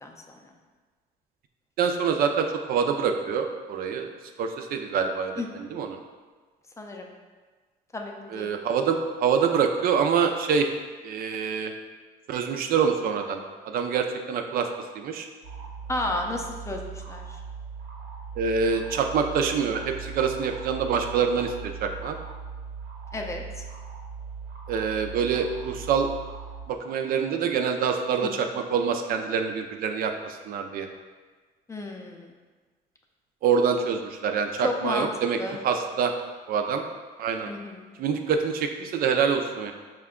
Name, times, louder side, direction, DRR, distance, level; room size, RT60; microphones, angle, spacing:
voice 1, 0.0-0.4 5.4-5.5 6.8-7.1 7.9-8.6 15.9-17.4 23.1-23.6 28.2-28.3 31.7-32.4 34.6-35.1 35.4-35.6 37.5-37.9, left 2 dB, 15° left, 1 dB, 0.4 m, -32 dB
voice 2, 1.8-4.1 4.4-6.0 8.3-10.7 11.0-11.7 12.3-14.7 15.0-15.3 18.4-22.2 24.7-26.1 26.7-30.9 33.4-35.4 35.6-36.1 36.5-36.8 37.2-37.5 38.0-39.7, right 6 dB, 60° right, 5 dB, 0.4 m, -26 dB
sound 1, 15.4-26.7, right 5 dB, 80° right, 0.9 m, -39 dB
5.0 x 2.2 x 3.6 m, 1.4 s
cardioid pair, 110°, 17 cm